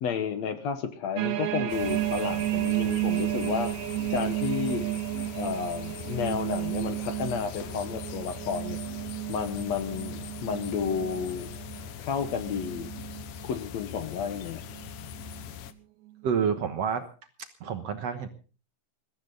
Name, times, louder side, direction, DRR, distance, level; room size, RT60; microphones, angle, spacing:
voice 1, 0.0-3.7 4.1-4.9 5.4-8.8 9.3-11.5 12.0-12.9 13.4-14.6, left 6 dB, 65° left, 10 dB, 2.0 m, -31 dB
sound 1, 1.2-13.5 14.0-14.3 14.7-15.4 16.1-16.2, right 16 dB, 80° right, 2.8 m, -32 dB
sound 2, 1.7-15.7, left 10 dB, 80° left, 2.7 m, -41 dB
voice 2, 16.2-17.1 17.4-18.3, right 7 dB, 60° right, 7 dB, 2.0 m, -29 dB
21.5 x 14.0 x 3.9 m, 0.36 s
omnidirectional pair, 3.9 m